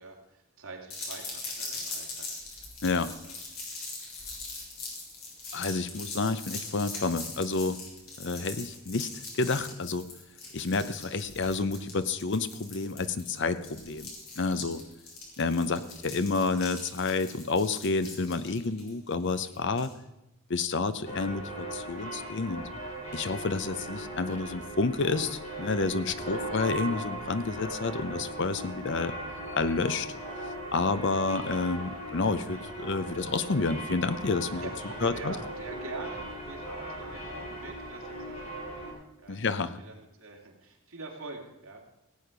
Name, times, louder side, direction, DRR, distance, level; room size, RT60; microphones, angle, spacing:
voice 1, 0.0-2.3 15.7-16.0 34.6-39.4 39.8-41.8, right 3 dB, 70° right, -1 dB, 2.6 m, -44 dB
sound 1, 0.9-19.9, left 3 dB, 75° left, 3.9 m, -41 dB
voice 2, 5.5-7.8 8.2-10.0 10.5-14.8 15.4-19.9 20.5-22.6 23.1-29.1 29.5-30.1 30.7-34.7 35.0-35.3 39.3-39.8, left 3 dB, 55° left, 13 dB, 0.6 m, -29 dB
sound 2, 21.0-38.9, right 1 dB, 30° left, 4.2 m, -39 dB
17.0 x 8.5 x 5.2 m, 0.89 s
head